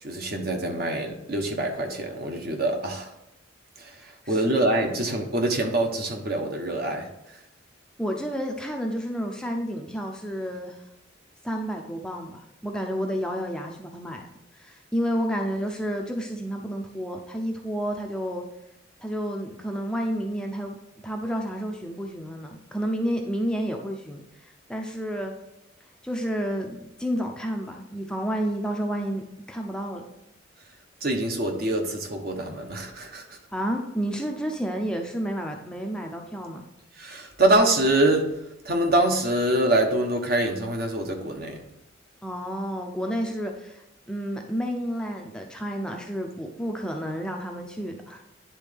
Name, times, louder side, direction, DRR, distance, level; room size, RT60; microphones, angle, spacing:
voice 1, 0.0-3.1 3.8-7.4 31.0-33.4 37.0-38.4 38.6-41.6, right 1 dB, 50° right, 3 dB, 1.0 m, -25 dB
voice 2, 8.0-10.8 11.4-14.3 14.5-18.4 19.0-20.8 21.0-24.2 24.7-25.3 26.0-29.2 29.5-30.0 33.5-36.6 42.2-48.2, equal, 5° left, 2 dB, 0.5 m, -30 dB
10.0 x 3.7 x 3.5 m, 0.87 s
head